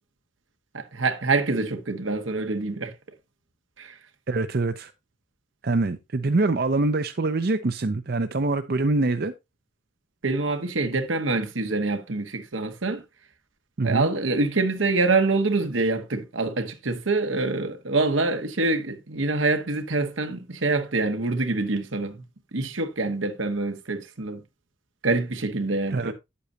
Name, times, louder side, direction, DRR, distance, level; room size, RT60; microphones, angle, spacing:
voice 1, 0.7-2.9 3.8-4.0 10.2-13.0 13.8-22.2 22.5-24.4 25.0-26.1, right 3 dB, 85° right, 1.4 m, -25 dB
voice 2, 4.3-4.9 5.6-9.3 13.8-14.1 25.9-26.1, right 3 dB, 50° right, 0.6 m, -24 dB
9.5 x 8.3 x 2.7 m
head